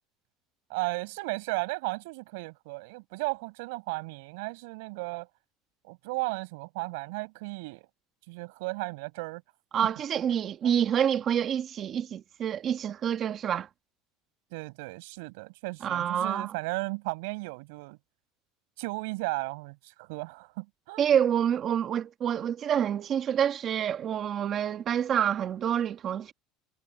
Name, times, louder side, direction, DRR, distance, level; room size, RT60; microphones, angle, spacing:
voice 1, 0.7-5.3 5.8-7.9 8.3-9.4 9.8-9.9 10.6-10.7 14.5-18.0 18.8-21.0, right 26 dB, 75° right, 7.6 m, -35 dB
voice 2, 9.7-13.7 15.8-16.5 21.0-26.3, right 9 dB, 30° right, 1.5 m, -27 dB
cardioid pair, 165°, 0 cm